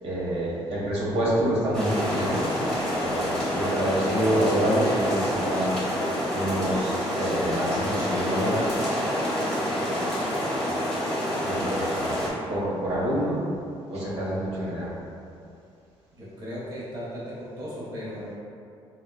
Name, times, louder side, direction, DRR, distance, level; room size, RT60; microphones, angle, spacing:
voice 1, 0.0-2.5 3.0-5.7 6.1-9.0 11.2-12.2 12.5-13.4 13.9-15.0, right 1 dB, 70° right, -7 dB, 0.8 m, -27 dB
sound 1, 1.7-12.3, equal, ahead, 0.8 m, -27 dB
voice 2, 16.2-18.4, equal, 35° right, -8 dB, 0.7 m, -36 dB
3.9 x 2.2 x 2.2 m, 2.5 s
cardioid pair, 145°, 11 cm